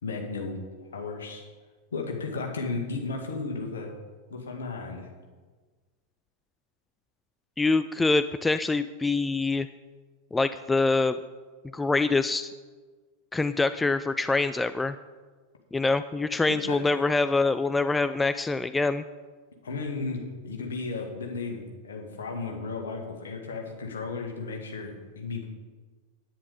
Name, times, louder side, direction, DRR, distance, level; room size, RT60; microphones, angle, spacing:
voice 1, 0.0-0.6 0.9-1.4 1.9-3.9 4.3-5.1 16.5-17.0 19.6-25.4, left 4 dB, 65° left, 1 dB, 2.0 m, -34 dB
voice 2, 7.6-9.7 10.3-11.2 11.7-12.5 13.3-14.9 15.7-19.0, left 3 dB, 10° left, 12 dB, 0.3 m, -25 dB
10.0 x 9.5 x 5.1 m, 1.4 s
figure-of-eight pair, 90°, 0 cm